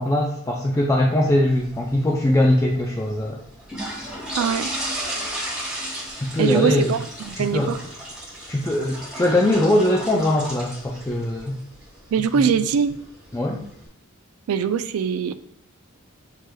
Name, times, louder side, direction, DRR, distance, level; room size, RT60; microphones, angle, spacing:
voice 1, 0.0-3.4 6.2-6.9 7.4-7.7 8.5-11.6 13.3-13.6, left 1 dB, 15° left, -1 dB, 0.4 m, -21 dB
sound 1, 1.5-13.9, right 1 dB, 5° right, 1.4 m, -35 dB
voice 2, 4.4-4.7 6.4-7.0 7.3-7.8 12.1-13.0 14.5-15.3, right 7 dB, 85° right, 12 dB, 0.3 m, -22 dB
7.4 x 3.2 x 2.2 m, 0.69 s
head